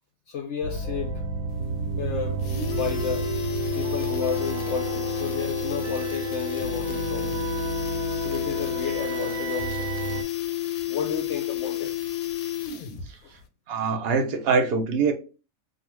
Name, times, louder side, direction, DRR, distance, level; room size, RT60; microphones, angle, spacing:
voice 1, 0.3-1.2 1.8-3.3 3.7-7.4 8.2-9.9 10.9-11.9 13.2-13.3, left 6 dB, 65° left, 0.8 m, -32 dB
sound 1, 0.6-10.2, right 5 dB, 80° right, 1.0 m, -32 dB
sound 2, 1.5-1.6 1.9-2.0 2.3-13.1 13.4-13.5, left 13 dB, 85° left, 1.1 m, -31 dB
voice 2, 13.7-15.1, right 5 dB, 55° right, 0.8 m, -23 dB
2.7 x 2.4 x 3.0 m
omnidirectional pair, 1.5 m